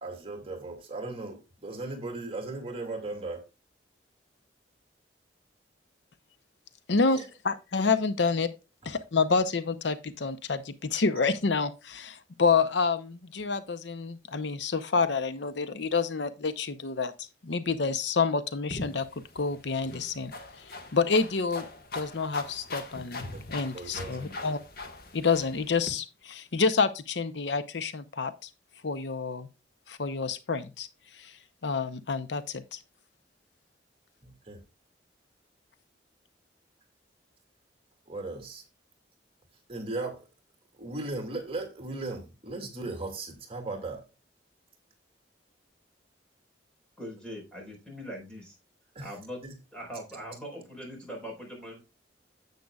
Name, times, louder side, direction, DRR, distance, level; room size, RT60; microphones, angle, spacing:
voice 1, 0.0-3.4 7.1-7.3 8.8-8.9 23.3-23.4 23.7-24.4 34.2-34.6 38.1-38.6 39.7-40.2 40.7-44.0 48.9-49.1, right 2 dB, 30° right, 2.3 m, -37 dB
voice 2, 6.9-8.5 8.8-19.1 19.3-20.3 20.9-21.7 21.9-24.6 25.1-28.5 28.8-29.5 29.9-30.9 31.2-31.3 31.6-32.8, left 4 dB, 75° left, 0.7 m, -28 dB
sound 1, 18.7-25.9, left 2 dB, 55° left, 1.6 m, -41 dB
voice 3, 47.0-48.6 49.0-49.4 49.7-51.8, equal, 5° left, 4.6 m, -41 dB
10.5 x 8.3 x 2.3 m
head